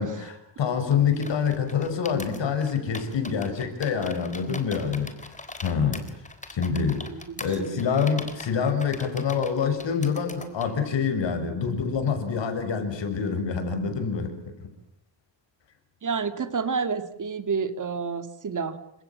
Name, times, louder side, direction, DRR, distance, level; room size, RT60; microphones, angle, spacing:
voice 1, 0.0-5.3 5.6-6.1 6.5-7.1 7.4-14.3 14.6-14.7, left 6 dB, 75° left, 8 dB, 6.7 m, -26 dB
sound 1, 1.1-10.7, left 2 dB, 15° left, 3.6 m, -41 dB
voice 2, 7.1-7.6 16.0-18.8, right 5 dB, 45° right, 9 dB, 2.6 m, -29 dB
30.0 x 26.5 x 7.5 m, 0.79 s
wide cardioid pair, 155°, 44 cm